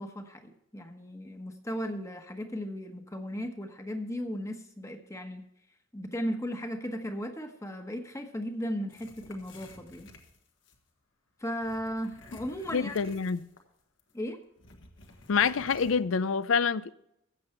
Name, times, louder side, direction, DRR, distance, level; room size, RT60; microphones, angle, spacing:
voice 1, 0.0-5.4 5.9-10.1 11.4-13.1 14.1-14.4, equal, 15° left, 1.2 m, -36 dB
sound 1, 8.9-10.8 11.6-13.7 14.0-14.1 14.6-16.0, left 2 dB, 65° left, 1.6 m, -52 dB
voice 2, 12.7-13.4 15.3-16.9, left 5 dB, 80° left, 0.5 m, -26 dB
14.5 x 8.0 x 4.4 m
head